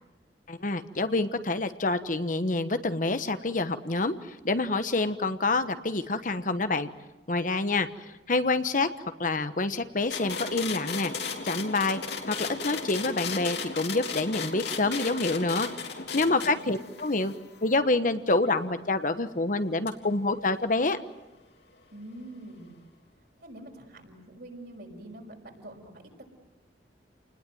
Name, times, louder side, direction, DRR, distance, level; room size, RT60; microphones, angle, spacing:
voice 1, 0.5-6.9 7.3-7.9 8.3-8.9 9.2-11.1 11.4-12.0 12.3-15.7 16.1-17.3 17.6-21.0, left 2 dB, 50° left, 10 dB, 1.2 m, -27 dB
sound 1, 10.1-18.7 19.9-20.0, left 5 dB, 70° left, 3.4 m, -36 dB
voice 2, 16.3-16.7 21.9-22.7 23.4-26.2, right 1 dB, 60° right, 1 dB, 6.1 m, -45 dB
30.0 x 20.0 x 9.4 m, 1.0 s
head